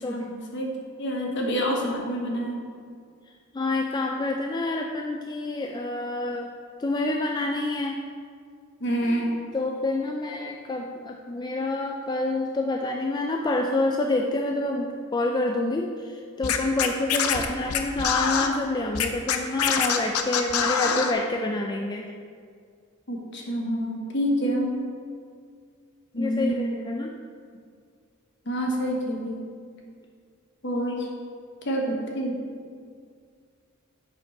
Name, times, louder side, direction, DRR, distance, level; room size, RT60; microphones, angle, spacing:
voice 1, 0.1-2.7 8.8-9.4 23.1-24.8 26.1-26.7 28.5-29.4 30.6-31.1 31.6-32.3, equal, 55° left, 0 dB, 1.2 m, -27 dB
voice 2, 3.5-6.5 6.8-8.0 9.5-22.1 26.2-27.1, left 2 dB, 20° left, 1 dB, 0.3 m, -27 dB
Scratching (performance technique), 16.4-18.5 18.9-21.1, left 7 dB, 85° left, 0.6 m, -24 dB
7.2 x 5.2 x 5.2 m, 2.1 s
head